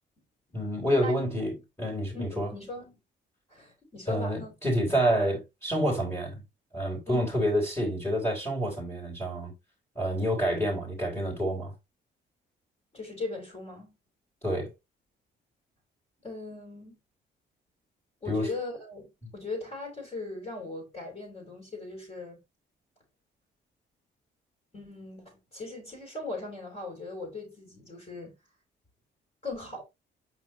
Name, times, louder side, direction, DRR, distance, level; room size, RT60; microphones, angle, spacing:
voice 1, 0.5-2.5 4.1-6.4 6.7-9.5 10.0-11.7 14.4-14.7 18.3-18.5 19.2-19.3, equal, 15° left, 3.8 m, -28 dB
voice 2, 2.1-2.9 3.5-4.5 7.1-7.3 12.9-13.9 16.2-17.0 18.2-19.0 19.3-22.4 24.7-28.3 29.4-29.8, left 2 dB, 35° left, 4.4 m, -39 dB
6.0 x 5.4 x 3.1 m
cardioid pair, 90°, 20 cm